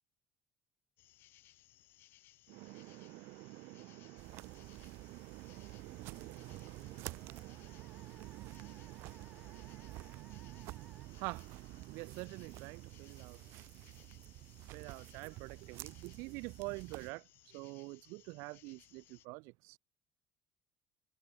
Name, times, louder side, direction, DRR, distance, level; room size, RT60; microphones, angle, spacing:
sound 1, 1.0-19.3, left 15 dB, 50° left, 1.4 m, -64 dB
voice 1, 2.5-13.8 14.7-19.8, right 28 dB, 85° right, 0.6 m, -48 dB
sound 2, 4.2-17.1, right 19 dB, 65° right, 2.0 m, -50 dB
Musical instrument, 5.8-11.1, right 2 dB, 5° right, 1.4 m, -64 dB
cardioid pair, 175°, 5 cm